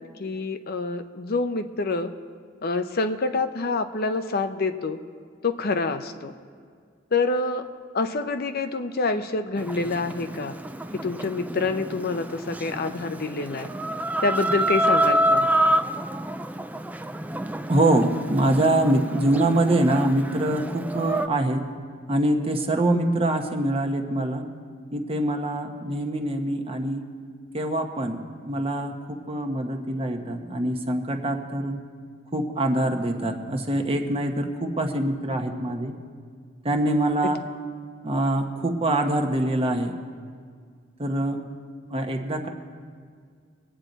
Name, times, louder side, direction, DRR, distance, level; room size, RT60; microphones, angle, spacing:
voice 1, 0.0-2.1 2.6-5.0 5.4-6.3 7.1-7.6 7.9-10.5 10.9-13.7 14.2-15.5 22.9-23.0, left 3 dB, 50° left, 8 dB, 0.6 m, -27 dB
Chicken rooster, 9.6-21.3, right 1 dB, 10° right, 0.3 m, -28 dB
voice 2, 17.7-21.7 22.1-24.4 24.9-27.0 27.5-28.2 28.4-31.8 32.3-35.9 36.6-37.4 38.0-39.9 41.0-41.4 41.9-42.5, right 1 dB, 30° right, 4 dB, 1.0 m, -24 dB
23.0 x 8.7 x 4.0 m, 2.1 s
head